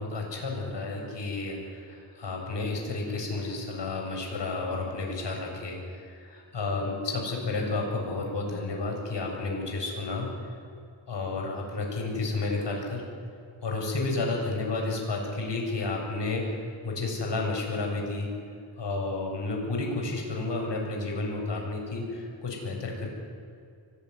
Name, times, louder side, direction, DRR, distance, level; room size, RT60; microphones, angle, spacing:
voice 1, 0.0-10.3 11.1-13.0 13.6-18.3 18.8-23.1, left 3 dB, 65° left, 1 dB, 7.8 m, -31 dB
24.0 x 19.5 x 9.8 m, 2.4 s
cardioid pair, 75°, 46 cm